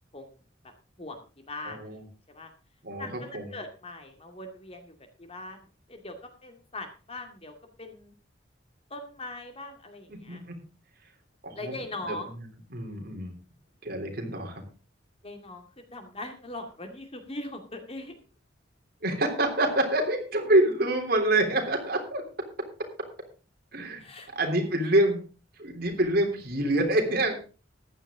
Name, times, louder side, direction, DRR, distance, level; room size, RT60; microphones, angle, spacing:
voice 1, 1.0-2.0 2.3-2.5 3.0-3.1 3.5-4.9 5.2-6.1 6.4-7.5 7.8-8.1 8.9-10.4 11.5-12.3 15.2-18.2 24.0-24.3, left 2 dB, 35° left, 5 dB, 2.4 m, -40 dB
voice 2, 1.6-2.0 2.8-3.5 10.1-10.6 11.4-11.7 12.1-12.2 12.7-13.3 13.8-14.6 19.0-22.2 23.7-24.0 24.3-25.2 25.6-27.4, right 1 dB, 55° right, 2 dB, 3.5 m, -26 dB
14.5 x 10.5 x 3.8 m, 0.35 s
head